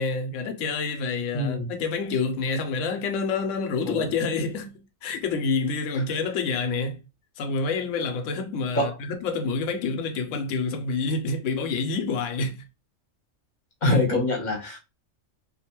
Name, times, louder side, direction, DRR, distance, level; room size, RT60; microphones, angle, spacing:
voice 1, 0.0-7.0 7.4-12.6, left 4 dB, 75° left, 0.9 m, -28 dB
voice 2, 1.3-1.7 3.8-4.1 6.1-6.2 8.7-9.0 13.8-14.8, left 1 dB, 40° left, 0.9 m, -24 dB
2.5 x 2.2 x 2.9 m
omnidirectional pair, 1.3 m